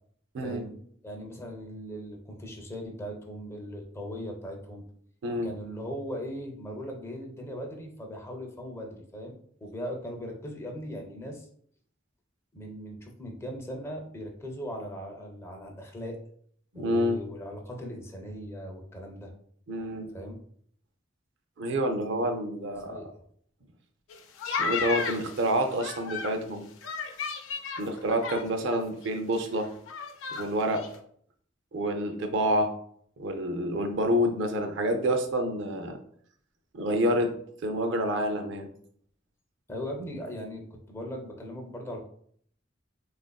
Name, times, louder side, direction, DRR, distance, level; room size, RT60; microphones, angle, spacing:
voice 1, 0.4-0.7 1.0-4.8 5.4-11.5 12.5-16.2 16.7-19.3 20.1-20.4 22.8-23.2 39.7-42.1, equal, 15° left, 1 dB, 0.4 m, -39 dB
voice 2, 16.7-17.2 19.7-20.1 21.6-23.0 24.4-26.7 27.8-29.7 30.3-30.8 31.7-32.7 33.2-36.0 36.7-37.3 37.6-38.7, equal, 65° right, 6 dB, 0.4 m, -28 dB
sound 1, 24.1-26.4 26.8-28.8 29.0-29.1 29.4-30.4 30.7-31.0, left 5 dB, 85° left, 0.4 m, -34 dB
3.4 x 2.4 x 2.2 m, 0.62 s
head